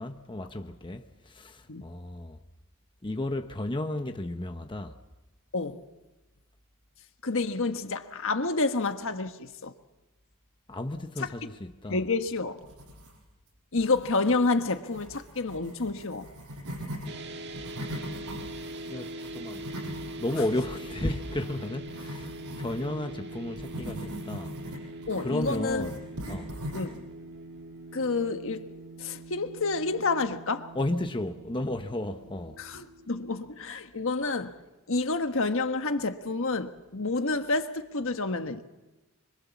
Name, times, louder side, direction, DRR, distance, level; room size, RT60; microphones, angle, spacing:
voice 1, 0.0-2.4 3.0-5.0 10.7-12.0 18.9-19.7 20.2-24.5 25.2-26.5 30.7-32.6, left 1 dB, 20° left, 0.9 m, -33 dB
voice 2, 7.2-9.7 11.9-12.6 13.7-16.3 25.1-25.9 26.7-27.0 27.9-28.7 29.0-30.7 32.6-34.6 34.9-38.6, left 3 dB, 60° left, 1.5 m, -29 dB
sound 1, 12.6-13.4 13.8-17.1 17.5-22.8 23.6-27.0, equal, 85° right, 7.1 m, -41 dB
sound 2, 17.0-33.4, right 1 dB, 50° right, 1.7 m, -43 dB
26.5 x 25.0 x 7.2 m
head